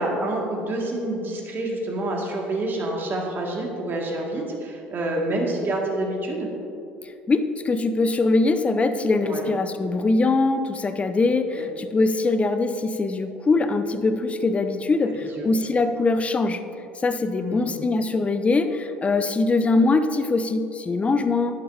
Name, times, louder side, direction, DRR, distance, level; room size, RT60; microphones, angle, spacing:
voice 1, 0.0-6.5 9.2-9.5 11.6-11.7 15.1-15.5 17.4-17.8, right 1 dB, 40° right, -1 dB, 2.2 m, -28 dB
voice 2, 7.0-16.6 17.0-21.5, left 3 dB, 25° left, 9 dB, 0.6 m, -22 dB
11.0 x 10.5 x 2.8 m, 2.6 s
hypercardioid pair, 60°, 5 cm